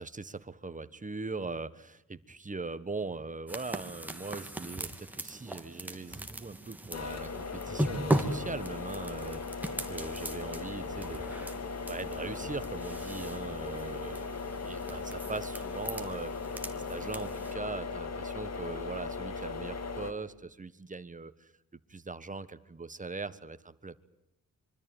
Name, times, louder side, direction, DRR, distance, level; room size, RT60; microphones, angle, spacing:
voice 1, 0.0-11.3 11.9-14.3 14.6-16.3 16.7-21.5 21.9-24.0, right 3 dB, 20° right, 13 dB, 1.4 m, -40 dB
sound 1, 3.5-17.5, right 1 dB, 5° right, 2.5 m, -38 dB
sound 2, 6.9-20.1, left 4 dB, 50° left, 2.3 m, -38 dB
25.5 x 24.5 x 9.2 m, 0.81 s
wide cardioid pair, 115°, 34 cm